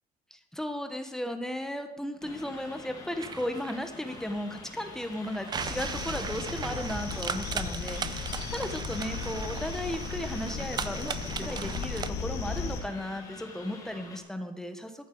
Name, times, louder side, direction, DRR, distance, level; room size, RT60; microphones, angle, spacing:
voice 1, 0.3-15.1, left 1 dB, 5° left, 6 dB, 1.0 m, -35 dB
sound 1, 2.2-14.2, left 3 dB, 20° left, 2.0 m, -47 dB
sound 2, 3.2-12.1, right 6 dB, 25° right, 0.5 m, -38 dB
sound 3, 5.6-12.8, left 5 dB, 80° left, 2.4 m, -36 dB
14.0 x 11.0 x 4.6 m, 1.0 s
cardioid pair, 175°, 17 cm